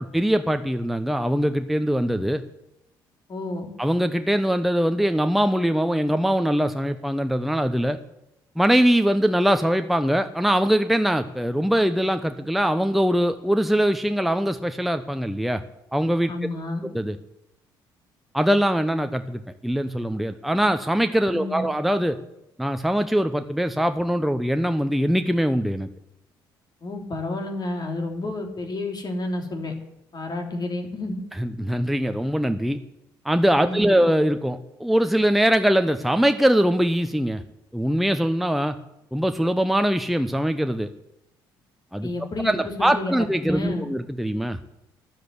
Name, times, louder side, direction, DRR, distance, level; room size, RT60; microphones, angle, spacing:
voice 1, 0.0-2.4 3.8-8.0 8.6-15.6 15.9-16.3 16.8-17.2 18.3-22.2 22.6-25.9 31.4-32.8 33.2-37.4 37.7-38.7 39.1-40.9 41.9-42.1 42.4-44.6, equal, ahead, 8 dB, 1.0 m, -22 dB
voice 2, 3.3-3.7 16.3-16.8 21.3-21.6 26.8-29.7 30.1-31.2 33.6-34.0 42.0-43.2 43.4-43.9, left 2 dB, 40° left, 3 dB, 3.4 m, -30 dB
13.0 x 11.0 x 8.2 m, 0.86 s
hypercardioid pair, 50°, 11 cm